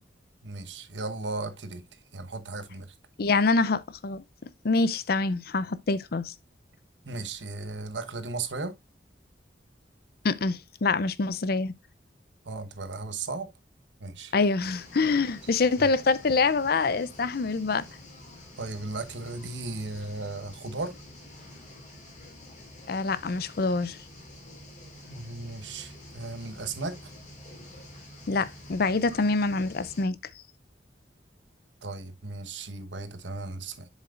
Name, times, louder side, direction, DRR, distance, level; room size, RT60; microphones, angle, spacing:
voice 1, 0.4-1.8 2.1-2.9 7.1-8.7 12.4-13.5 14.0-14.3 15.8-15.9 18.6-21.0 25.1-27.0 31.8-33.9, right 3 dB, 90° right, 1.2 m, -36 dB
voice 2, 3.2-4.2 4.6-6.3 10.2-11.7 14.3-17.8 22.9-24.0 28.3-30.2, left 3 dB, 55° left, 0.6 m, -25 dB
sound 1, 14.6-30.1, left 1 dB, 40° left, 3.6 m, -48 dB
7.3 x 7.3 x 2.5 m
head